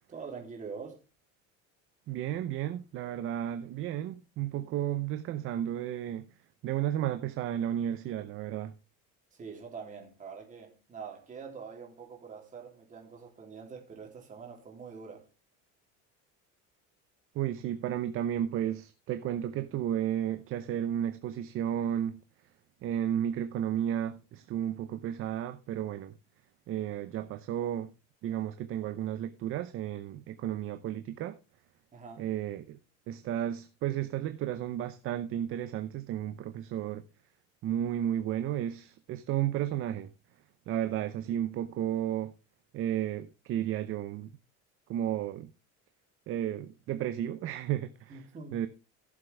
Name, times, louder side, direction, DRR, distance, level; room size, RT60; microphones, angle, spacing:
voice 1, 0.1-1.0 9.3-15.3 31.9-32.3 48.1-48.6, right 5 dB, 25° right, 3.2 m, -45 dB
voice 2, 2.1-6.3 6.6-8.7 17.3-22.2 22.8-26.1 26.7-27.9 28.2-31.4 32.2-32.8 33.1-37.0 37.6-40.1 40.7-42.3 42.7-44.3 44.9-45.5 46.3-48.2 48.5-48.7, right 11 dB, 40° right, 0.7 m, -33 dB
16.0 x 7.5 x 3.4 m
cardioid pair, 160°, 32 cm